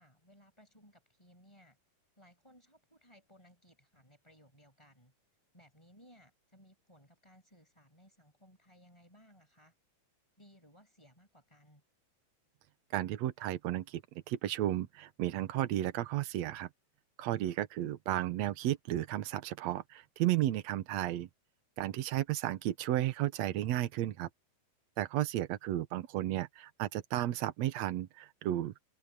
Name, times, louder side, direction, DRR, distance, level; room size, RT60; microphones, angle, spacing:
voice 1, 0.0-1.8 2.2-5.1 5.5-9.7 10.4-11.8 17.4-17.6, equal, 5° left, 7.0 m, -62 dB
voice 2, 12.9-14.0 14.3-16.7 17.2-21.3 21.8-24.3 25.0-28.9, right 13 dB, 75° right, 1.6 m, -33 dB
omnidirectional pair, 4.5 m